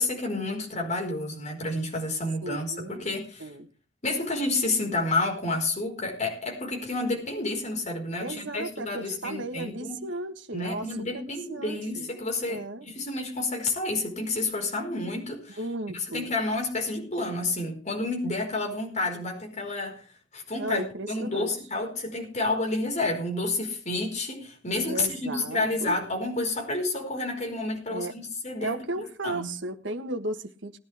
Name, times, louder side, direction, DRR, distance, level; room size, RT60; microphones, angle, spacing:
voice 1, 0.0-3.5 4.0-10.0 10.5-15.6 15.9-20.0 20.3-20.8 21.1-29.5, left 2 dB, 35° left, 1 dB, 4.8 m, -30 dB
voice 2, 2.4-3.0 3.4-3.7 8.2-12.1 12.5-12.9 15.6-16.3 20.6-21.5 24.8-26.0 27.9-28.1 28.6-30.8, right 2 dB, 70° right, 7 dB, 1.5 m, -35 dB
19.5 x 11.0 x 3.5 m, 0.37 s
head